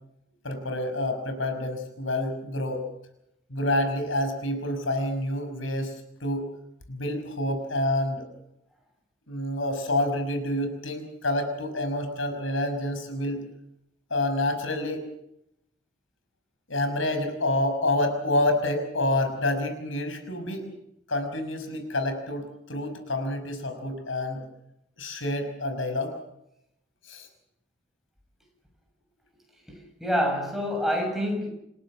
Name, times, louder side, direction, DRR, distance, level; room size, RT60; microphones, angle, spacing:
voice 1, 0.4-2.9 3.5-6.0 6.2-6.5 6.9-8.3 9.3-13.4 14.1-15.1 16.7-20.7 21.1-24.4 25.0-26.2 27.0-27.3, left 1 dB, 90° left, 5.8 m, -28 dB
voice 2, 29.7-31.5, equal, ahead, 6.9 m, -27 dB
27.5 x 17.0 x 7.4 m
head